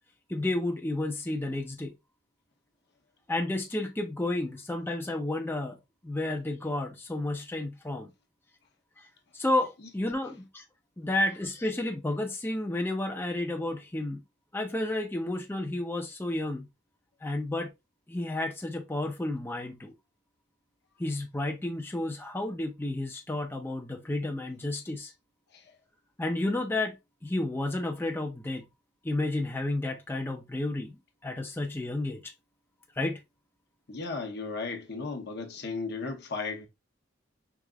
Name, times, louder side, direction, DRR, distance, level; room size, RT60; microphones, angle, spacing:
voice 1, 0.3-1.9 3.3-5.8 6.0-8.1 9.3-10.6 11.0-14.2 14.5-16.7 17.2-17.7 18.1-19.9 21.0-25.1 26.2-27.0 27.2-28.6 29.0-31.0 31.2-32.3 33.0-33.2, left 2 dB, 10° left, 0.5 m, -31 dB
voice 2, 33.9-36.7, left 4 dB, 60° left, 0.9 m, -35 dB
4.7 x 2.9 x 2.3 m
head